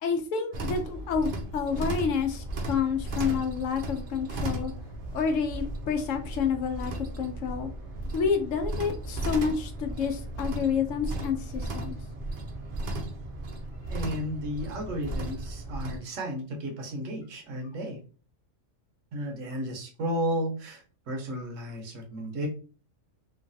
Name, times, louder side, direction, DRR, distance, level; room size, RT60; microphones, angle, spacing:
voice 1, 0.0-4.7 5.1-7.7 8.1-12.0, left 6 dB, 80° left, 6 dB, 0.9 m, -29 dB
sound 1, 0.5-16.0, right 1 dB, 55° right, 0.7 m, -35 dB
voice 2, 13.9-18.0 19.1-22.5, equal, 75° right, 2 dB, 1.1 m, -33 dB
3.1 x 2.3 x 2.6 m, 0.39 s
omnidirectional pair, 1.3 m